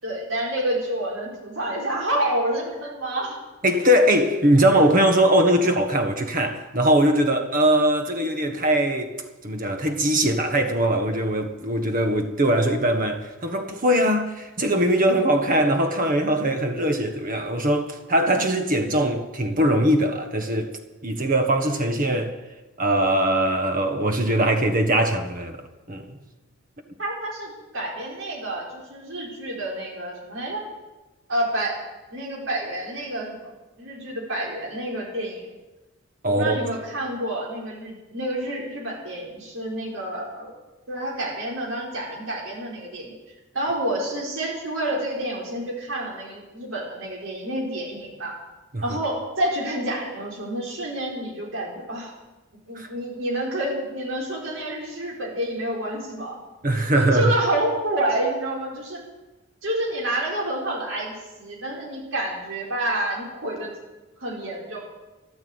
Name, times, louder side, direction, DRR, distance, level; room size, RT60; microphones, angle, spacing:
voice 1, 0.0-3.4 27.0-30.6 31.3-31.8 32.1-33.5 33.8-35.4 36.3-40.5 40.9-43.1 43.5-48.4 48.8-52.1 52.7-56.4 56.9-59.0 59.6-63.7 64.2-64.8, right 1 dB, 80° right, 4.7 m, -28 dB
voice 2, 3.6-9.1 9.4-20.7 21.0-22.3 22.8-25.6 25.9-26.2 36.2-36.6 48.7-49.0 52.7-52.9 56.6-57.3, right 1 dB, 45° right, 1.4 m, -21 dB
13.5 x 12.0 x 8.0 m
head